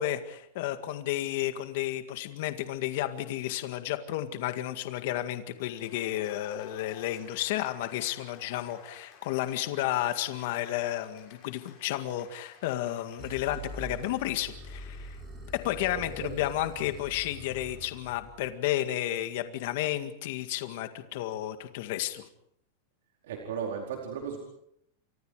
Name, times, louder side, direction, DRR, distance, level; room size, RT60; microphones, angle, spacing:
voice 1, 0.0-15.2 15.6-22.3, left 13 dB, 50° left, 8 dB, 1.9 m, -32 dB
Cheering / Applause, 5.5-15.1, left 5 dB, 25° left, 6.4 m, -54 dB
sound 1, 13.2-18.4, right 1 dB, 10° right, 6.9 m, -44 dB
voice 2, 15.9-16.4 23.2-24.4, right 7 dB, 70° right, 0 dB, 4.6 m, -36 dB
29.5 x 24.5 x 5.0 m, 0.76 s
supercardioid pair, 180°, 0 cm